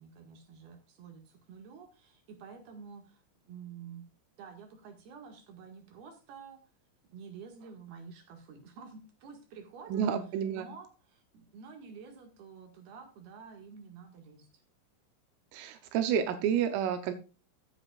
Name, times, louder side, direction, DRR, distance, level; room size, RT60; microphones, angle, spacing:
voice 1, 0.0-6.6 7.1-10.0 10.5-14.6, right 6 dB, 60° right, 4 dB, 3.4 m, -49 dB
voice 2, 9.9-10.7 15.5-17.1, right 8 dB, 85° right, 8 dB, 3.5 m, -30 dB
15.0 x 8.1 x 2.5 m, 0.32 s
omnidirectional pair, 5.8 m